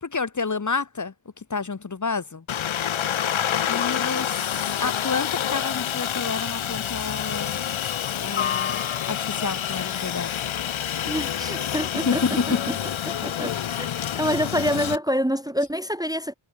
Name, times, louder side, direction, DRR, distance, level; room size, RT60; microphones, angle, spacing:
voice 1, 0.0-2.4 3.7-7.6 8.2-10.3 11.9-12.6, left 4 dB, 40° left, 1.2 m, -29 dB
Aircraft, 2.5-15.0, left 10 dB, 85° left, 0.8 m, -27 dB
voice 2, 11.0-12.4 13.1-13.9 14.1-16.3, equal, 10° right, 0.9 m, -26 dB
wide cardioid pair, 80°, 47 cm